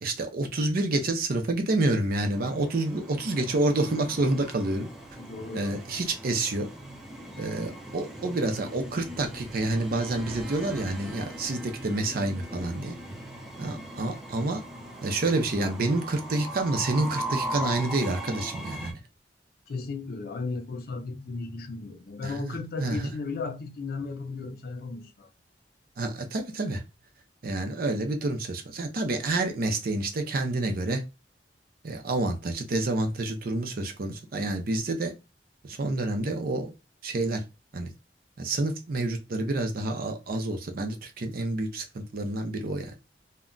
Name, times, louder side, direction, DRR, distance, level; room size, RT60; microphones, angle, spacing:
voice 1, 0.0-4.9 5.5-6.7 7.4-13.0 13.6-14.6 15.0-19.0 22.2-23.1 26.0-26.8 27.4-31.0 31.8-35.1 35.6-36.7 37.0-37.4 37.7-37.9 38.4-42.9, right 2 dB, 55° right, 0.5 m, -28 dB
Train, 2.1-18.9, equal, ahead, 0.6 m, -39 dB
voice 2, 5.2-5.8 19.7-25.3, left 3 dB, 60° left, 0.4 m, -35 dB
2.2 x 2.1 x 3.7 m
head